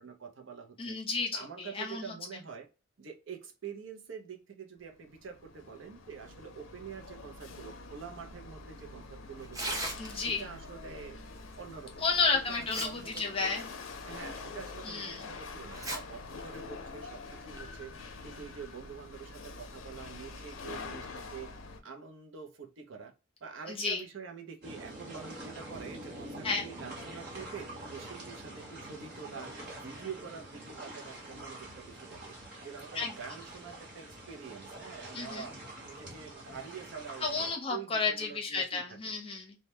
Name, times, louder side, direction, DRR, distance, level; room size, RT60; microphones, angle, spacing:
voice 1, 0.0-1.0 1.3-2.7 3.0-9.8 10.1-11.2 11.6-13.3 14.0-17.9 18.2-21.5 21.8-23.1 23.4-32.3 32.6-35.6 35.8-38.8, right 6 dB, 75° right, 4 dB, 0.5 m, -46 dB
voice 2, 0.8-2.1 10.0-10.5 12.0-13.6 14.8-15.3 23.7-24.0 26.4-26.7 32.9-33.1 35.1-35.5 37.2-39.5, left 4 dB, 30° left, 0 dB, 0.6 m, -32 dB
Chatter / Hiss / Rattle, 4.9-21.8, left 3 dB, 90° left, 0.5 m, -46 dB
Tearing, 9.4-10.4 11.9-12.0 12.5-13.2 13.6-13.7 14.3-14.4 15.7-16.0 16.4-16.5 17.3-17.6, right 1 dB, 15° right, 0.5 m, -37 dB
sound 1, 24.6-37.5, right 1 dB, 55° right, 1.0 m, -46 dB
2.1 x 2.1 x 2.8 m, 0.30 s
head